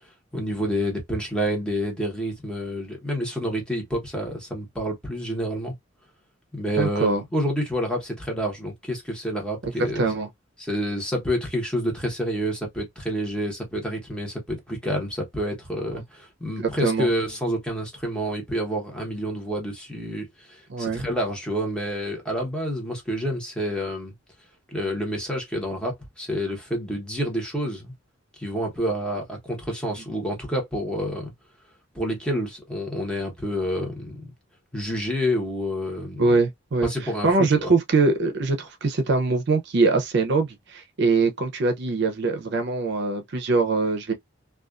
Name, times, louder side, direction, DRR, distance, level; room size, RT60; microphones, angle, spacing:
voice 1, 0.3-5.7 6.5-10.1 10.6-24.1 24.7-27.9 28.4-31.3 31.9-34.3 34.7-36.3 36.8-37.7, equal, 5° left, 0.9 m, -28 dB
voice 2, 6.8-7.2 10.0-10.3 16.6-17.1 20.7-21.1 36.2-36.9 37.2-44.1, right 3 dB, 60° right, 0.5 m, -22 dB
2.4 x 2.3 x 2.4 m
head